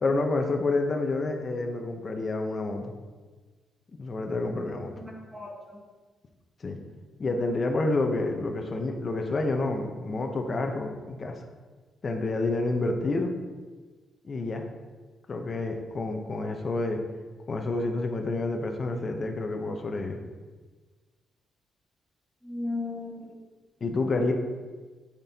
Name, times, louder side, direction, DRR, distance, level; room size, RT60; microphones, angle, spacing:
voice 1, 0.0-3.0 4.0-4.9 6.6-6.8 7.2-11.4 12.0-13.3 14.2-14.6 15.3-17.0 17.5-20.2 23.8-24.3, left 2 dB, 35° left, 4 dB, 0.8 m, -28 dB
voice 2, 5.0-5.8 22.4-23.3, left 2 dB, ahead, -2 dB, 1.5 m, -36 dB
8.5 x 6.0 x 2.9 m, 1.4 s
cardioid pair, 125°, 0 cm